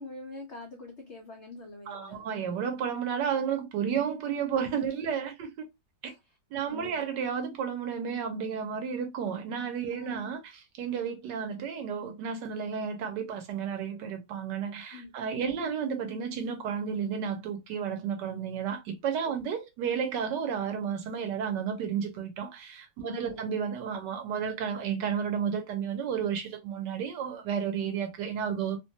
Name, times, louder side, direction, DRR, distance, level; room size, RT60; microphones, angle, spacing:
voice 1, 0.0-2.3 6.2-6.4 6.6-7.0 9.9-10.2 14.9-15.1 15.4-15.6 19.3-19.4 23.0-23.4, left 2 dB, 85° left, 0.6 m, -45 dB
voice 2, 1.9-5.7 6.0-6.1 6.5-28.8, right 7 dB, 70° right, 1.2 m, -32 dB
3.1 x 2.2 x 2.6 m
omnidirectional pair, 2.1 m